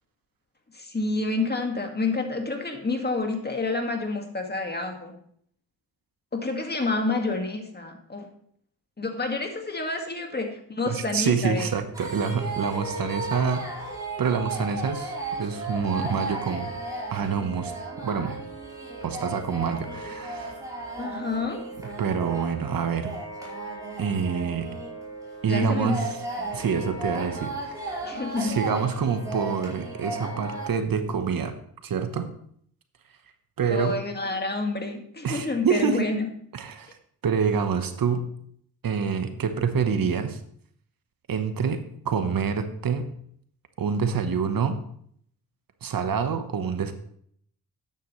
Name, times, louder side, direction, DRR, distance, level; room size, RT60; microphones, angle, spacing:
voice 1, 0.7-5.2 6.3-8.3 9.0-11.8 21.0-21.7 25.5-26.0 26.4-26.5 28.0-28.6 33.7-36.3, left 3 dB, 25° left, 4 dB, 1.9 m, -29 dB
voice 2, 10.9-13.7 14.2-16.7 17.1-17.7 18.0-18.4 19.0-20.6 22.0-23.1 24.0-24.7 25.4-26.1 26.5-28.1 28.4-31.5 31.8-32.3 33.6-34.0 35.2-36.1 36.5-36.9 37.2-38.3 38.8-40.4 41.3-43.1 43.8-44.8 45.8-46.9, right 6 dB, 60° right, 8 dB, 1.1 m, -27 dB
sound 1, 11.9-30.7, right 2 dB, 10° right, 4.3 m, -35 dB
12.5 x 9.2 x 3.2 m, 0.64 s
cardioid pair, 90°, 38 cm